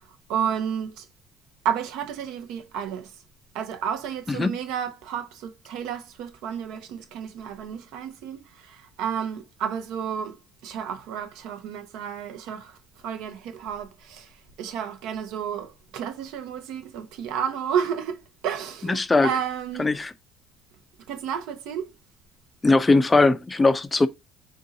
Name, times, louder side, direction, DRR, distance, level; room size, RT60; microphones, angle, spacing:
voice 1, 0.3-1.1 1.6-3.1 3.5-12.8 13.0-14.3 14.6-19.9 21.1-21.9, right 8 dB, 75° right, 0.6 m, -31 dB
voice 2, 18.9-19.3 19.8-20.1 22.6-24.1, left 3 dB, 15° left, 0.4 m, -19 dB
3.9 x 2.6 x 3.8 m
cardioid pair, 135°, 0 cm